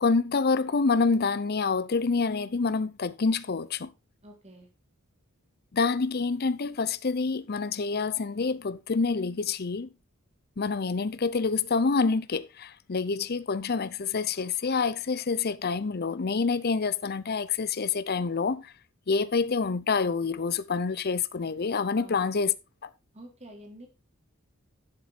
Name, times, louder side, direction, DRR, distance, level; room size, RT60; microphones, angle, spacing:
voice 1, 0.0-3.9 5.7-9.9 10.6-18.7 19.1-22.5, left 4 dB, 50° left, 0.6 m, -27 dB
voice 2, 4.2-4.7 21.9-22.3 23.1-23.9, right 1 dB, 30° right, 3.4 m, -48 dB
11.5 x 7.3 x 4.2 m
head